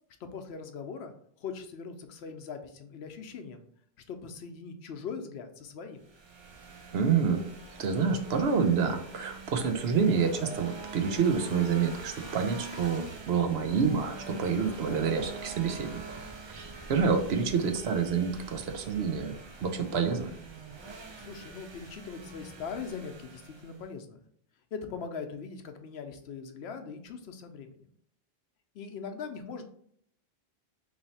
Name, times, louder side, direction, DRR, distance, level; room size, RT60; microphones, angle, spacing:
voice 1, 0.2-3.7 4.1-6.0 21.1-24.2 24.7-27.9 28.7-29.6, left 5 dB, 80° left, 6 dB, 0.9 m, -41 dB
sound 1, 6.0-23.9, right 3 dB, 45° right, 0.3 m, -44 dB
voice 2, 6.9-7.5 7.8-16.0 16.5-19.3 19.6-20.3, right 6 dB, 75° right, 6 dB, 0.9 m, -28 dB
3.2 x 2.8 x 4.0 m, 0.65 s
omnidirectional pair, 1.1 m